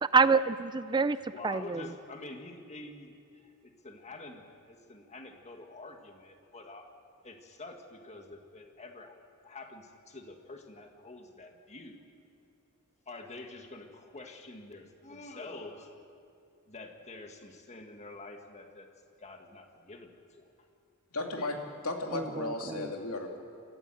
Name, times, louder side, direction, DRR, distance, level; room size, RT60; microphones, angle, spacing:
voice 1, 0.0-1.9 22.1-22.2 22.7-22.8, right 4 dB, 20° right, 14 dB, 0.4 m, -26 dB
voice 2, 1.3-6.9 7.2-9.1 9.4-12.0 13.1-16.0 16.7-18.9 19.2-20.5, left 2 dB, 30° left, 4 dB, 1.9 m, -47 dB
voice 3, 21.1-21.6 21.8-23.4, left 2 dB, 75° left, 2 dB, 2.8 m, -35 dB
27.5 x 14.0 x 7.9 m, 2.6 s
head